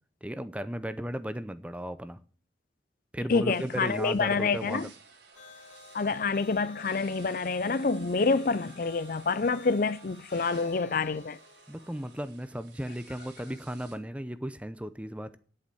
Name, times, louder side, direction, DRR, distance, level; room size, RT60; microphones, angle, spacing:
voice 1, 0.2-2.2 3.1-4.9 11.7-15.4, equal, 5° right, 0.7 m, -36 dB
voice 2, 3.3-4.9 5.9-11.4, left 4 dB, 50° left, 0.5 m, -27 dB
sound 1, 3.5-14.0, right 5 dB, 85° right, 4.7 m, -55 dB
sound 2, 5.3-12.2, left 2 dB, 85° left, 2.4 m, -53 dB
10.0 x 8.6 x 7.8 m
head